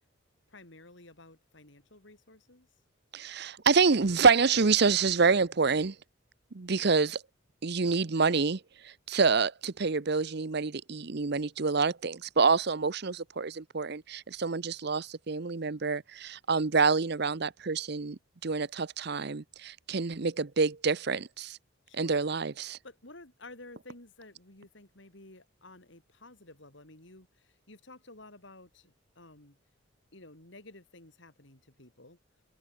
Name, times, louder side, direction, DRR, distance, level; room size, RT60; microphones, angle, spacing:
voice 1, 0.5-2.7 21.9-22.2 22.8-29.6 30.1-32.2, left 2 dB, 60° left, 4.0 m, -52 dB
voice 2, 3.1-5.9 6.5-7.2 7.6-21.6 21.9-22.8, right 4 dB, 55° right, 0.8 m, -27 dB
head